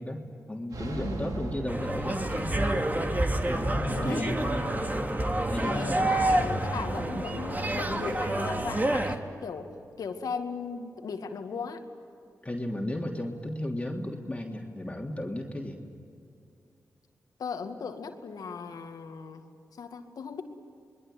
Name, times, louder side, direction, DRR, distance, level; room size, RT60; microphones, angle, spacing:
voice 1, 0.0-2.7 3.4-4.7 5.5-6.3 12.4-15.8, left 1 dB, 20° left, 0 dB, 3.2 m, -35 dB
sound 1, 0.7-2.9, right 2 dB, 75° right, 3.1 m, -38 dB
sound 2, 1.7-9.2, right 1 dB, 30° right, 2.7 m, -28 dB
voice 2, 3.9-4.4 5.6-9.7 10.0-11.8 17.4-19.4 19.8-20.4, left 5 dB, 75° left, 6 dB, 2.1 m, -37 dB
27.5 x 21.5 x 9.3 m, 2.5 s
supercardioid pair, 45°, 6 cm